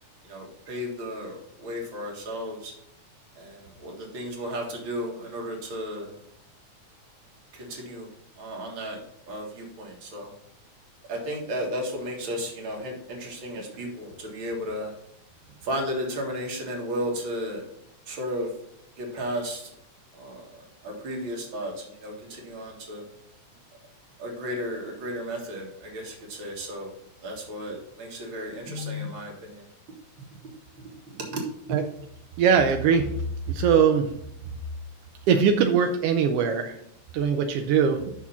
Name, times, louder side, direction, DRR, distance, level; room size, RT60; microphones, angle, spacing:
voice 1, 0.2-2.7 3.4-6.1 7.5-8.1 8.4-9.0 9.3-10.3 11.1-14.9 15.6-17.6 18.1-18.5 19.0-19.7 20.2-23.0 24.2-26.9 27.2-29.6 31.1-31.4 31.7-31.8, equal, 45° right, 0 dB, 2.2 m, -34 dB
voice 2, 32.4-33.1 33.5-34.1 35.3-36.8 37.1-38.1, right 7 dB, 80° right, 5 dB, 1.3 m, -21 dB
6.1 x 5.9 x 5.6 m, 0.75 s
omnidirectional pair, 3.4 m